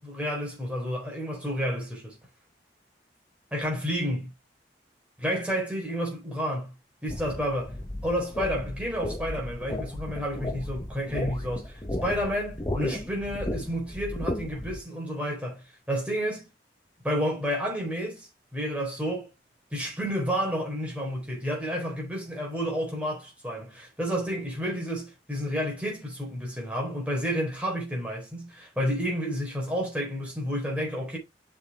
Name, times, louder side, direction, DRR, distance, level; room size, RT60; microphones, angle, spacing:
voice 1, 0.0-2.2 3.5-4.3 5.2-6.7 7.0-7.8 8.0-16.5 17.0-19.3 19.7-31.2, equal, 5° right, 4.1 m, -30 dB
sound 1, 7.1-14.8, left 1 dB, 20° left, 1.3 m, -34 dB
7.4 x 6.2 x 3.6 m
head